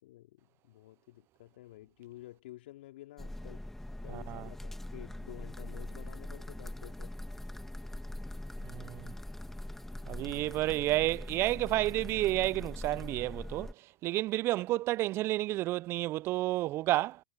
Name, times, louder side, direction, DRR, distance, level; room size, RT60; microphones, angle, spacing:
voice 1, 0.0-3.7 4.0-7.1, left 16 dB, 70° left, 4.0 m, -51 dB
sound 1, 3.2-13.7, left 1 dB, 5° left, 1.7 m, -42 dB
voice 2, 4.1-4.5 8.6-9.1 10.1-17.2, right 16 dB, 45° right, 0.4 m, -31 dB
hypercardioid pair, 90°, 6 cm